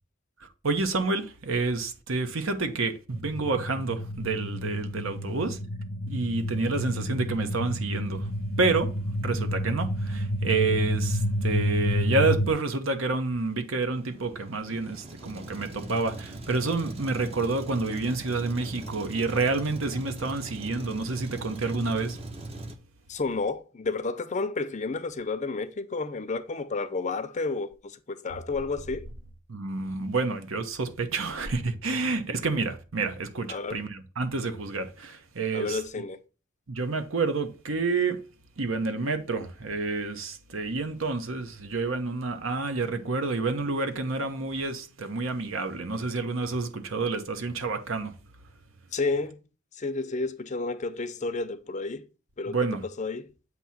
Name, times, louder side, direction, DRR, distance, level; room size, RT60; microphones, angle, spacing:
voice 1, 0.4-5.6 6.1-8.3 8.6-22.2 29.5-35.8 36.7-38.2 38.6-48.1 52.5-52.8, right 3 dB, 70° right, 1.0 m, -29 dB
sound 1, 3.1-12.5, equal, 75° left, 0.8 m, -30 dB
Truck, 14.0-22.8, right 2 dB, 30° right, 0.8 m, -40 dB
voice 2, 23.1-29.0 33.5-33.8 35.5-36.2 48.9-49.4 49.8-52.0 52.4-52.6 53.0-53.3, left 3 dB, 35° left, 0.5 m, -31 dB
7.9 x 2.9 x 5.7 m
head